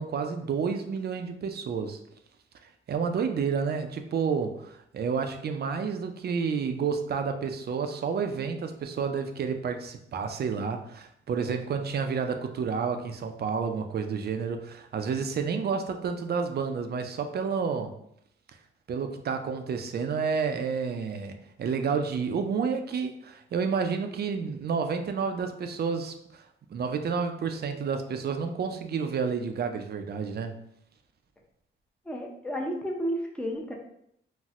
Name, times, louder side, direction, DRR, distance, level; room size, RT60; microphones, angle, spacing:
voice 1, 0.0-2.0 2.9-17.9 18.9-26.4 26.7-30.5, right 6 dB, 55° right, 6 dB, 0.4 m, -30 dB
voice 2, 32.0-33.7, equal, 5° left, 0 dB, 0.5 m, -32 dB
4.0 x 2.0 x 2.4 m, 0.72 s
cardioid pair, 100°, 20 cm